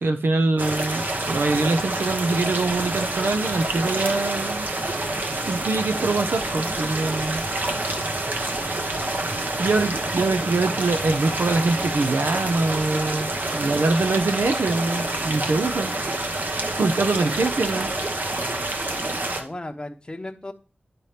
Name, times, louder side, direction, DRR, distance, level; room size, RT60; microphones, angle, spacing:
voice 1, 0.0-4.7 5.5-7.4 9.6-15.9 16.7-17.9, right 3 dB, 80° right, 7 dB, 0.6 m, -24 dB
sound 1, 0.6-19.4, right 2 dB, 60° right, 1.0 m, -27 dB
voice 2, 19.3-20.5, left 1 dB, 25° left, 6 dB, 0.8 m, -36 dB
10.5 x 4.2 x 3.3 m, 0.37 s
wide cardioid pair, 50°, 4 cm